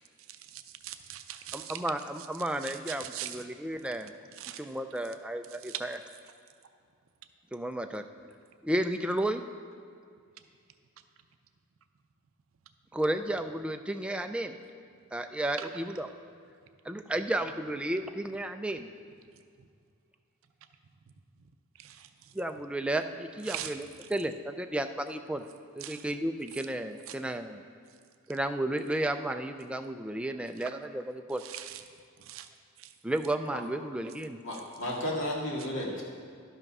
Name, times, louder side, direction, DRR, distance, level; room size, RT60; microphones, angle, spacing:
voice 1, 0.5-1.8 2.6-3.4 4.3-4.6 5.6-5.8 15.6-15.7 21.8-22.1 23.5-23.7 25.8-26.0 27.1-27.2 30.6-30.7 31.4-31.8 32.2-32.5 32.8-32.9, right 12 dB, 75° right, 8 dB, 0.5 m, -41 dB
voice 2, 1.5-4.1 4.6-6.0 7.5-8.0 8.6-9.4 12.9-14.5 15.1-16.1 16.9-18.9 22.3-25.4 25.8-27.6 28.3-31.4 33.0-34.4, right 1 dB, 5° right, 6 dB, 0.4 m, -33 dB
voice 3, 34.4-36.0, left 1 dB, 65° left, -3 dB, 2.0 m, -33 dB
12.0 x 5.8 x 5.4 m, 2.2 s
head